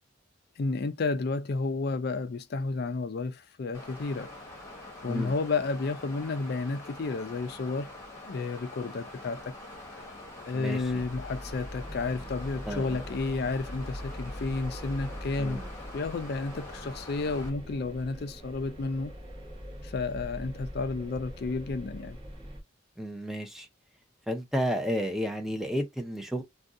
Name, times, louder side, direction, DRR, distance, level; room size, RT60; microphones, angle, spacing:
voice 1, 0.6-4.3 5.0-7.9 8.3-9.5 10.5-15.6 15.9-19.1 19.8-22.2, left 3 dB, 55° left, 0.4 m, -31 dB
Water, 3.7-17.5, left 1 dB, 15° left, 1.2 m, -45 dB
voice 2, 10.5-11.0 12.7-13.0 15.4-15.7 23.0-23.7 24.3-26.4, equal, ahead, 0.6 m, -32 dB
sound 1, 10.7-22.6, equal, 30° right, 1.2 m, -42 dB
2.6 x 2.3 x 3.6 m
head